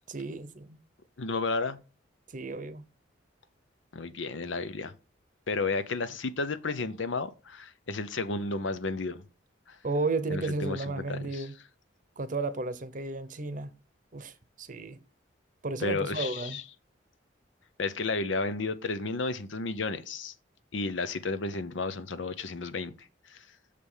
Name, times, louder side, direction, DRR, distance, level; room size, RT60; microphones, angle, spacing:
voice 1, 0.1-0.8 2.3-2.8 9.8-11.5 12.2-13.7 14.1-15.0 15.6-16.6, right 3 dB, 40° right, 0.8 m, -33 dB
voice 2, 1.2-1.8 3.9-4.9 5.5-9.2 9.7-9.8 10.3-11.5 15.8-16.6 17.8-20.3 20.7-23.5, left 3 dB, 75° left, 0.7 m, -32 dB
6.8 x 5.0 x 5.5 m
head